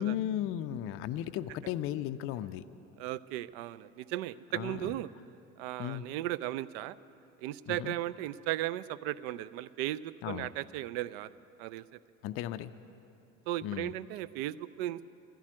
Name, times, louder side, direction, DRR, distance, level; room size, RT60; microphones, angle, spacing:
voice 1, 0.0-2.7 4.5-4.9 5.8-6.1 7.7-8.0 10.2-10.5 12.2-12.7 13.6-13.9, left 11 dB, 35° left, 11 dB, 0.4 m, -35 dB
voice 2, 3.0-5.1 5.6-7.0 7.4-11.3 11.6-11.8 13.5-15.0, right 15 dB, 55° right, 18 dB, 0.4 m, -36 dB
11.5 x 10.5 x 9.5 m, 2.8 s
figure-of-eight pair, 60°, 39 cm